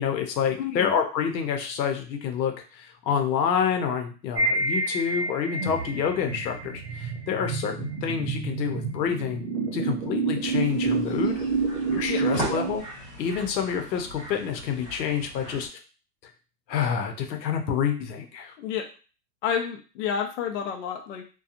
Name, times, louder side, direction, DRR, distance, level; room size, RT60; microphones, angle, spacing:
voice 1, 0.0-9.4 9.7-11.3 11.9-12.8 13.2-15.7 16.7-18.5, left 7 dB, 85° left, 4 dB, 0.8 m, -28 dB
voice 2, 0.6-0.9 12.1-12.2 18.6-18.9 19.4-21.2, left 8 dB, 50° left, 3 dB, 0.4 m, -29 dB
sound 1, 4.4-12.8, right 4 dB, 45° right, 0.6 m, -28 dB
sound 2, 10.4-15.7, right 1 dB, 20° right, 1.2 m, -38 dB
2.8 x 2.3 x 2.4 m, 0.35 s
supercardioid pair, 155°, 50 cm